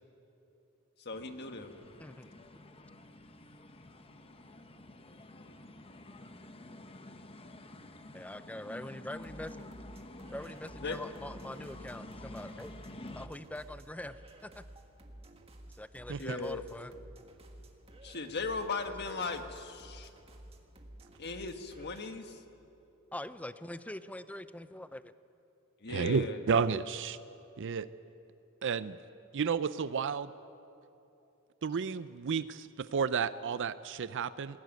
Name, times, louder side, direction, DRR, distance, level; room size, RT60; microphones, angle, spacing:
voice 1, 1.0-1.7 10.8-11.0 16.2-16.6 18.0-20.1 21.2-22.4 25.8-26.4, left 4 dB, 50° left, 6 dB, 1.4 m, -37 dB
sound 1, 1.1-13.3, left 1 dB, 25° left, 1.0 m, -50 dB
voice 2, 2.0-2.3 8.1-9.6 10.3-12.7 13.1-14.6 15.8-16.9 19.1-19.5 23.1-25.1, left 1 dB, 5° left, 13 dB, 0.5 m, -43 dB
sound 2, 9.1-22.2, right 1 dB, 30° right, 1.8 m, -53 dB
voice 3, 25.9-27.2 27.6-27.9 28.6-29.0 29.3-30.3 31.6-34.6, right 6 dB, 60° right, 14 dB, 0.5 m, -31 dB
20.5 x 17.5 x 9.3 m, 2.8 s
head